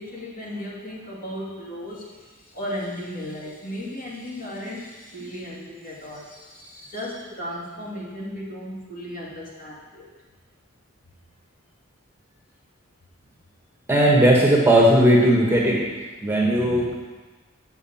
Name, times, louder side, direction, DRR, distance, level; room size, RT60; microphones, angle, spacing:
voice 1, 0.0-10.1, equal, 45° left, -5 dB, 2.3 m, -35 dB
voice 2, 13.9-15.8 16.2-16.9, right 1 dB, 10° right, -3 dB, 1.3 m, -17 dB
8.0 x 5.9 x 7.2 m, 1.3 s
head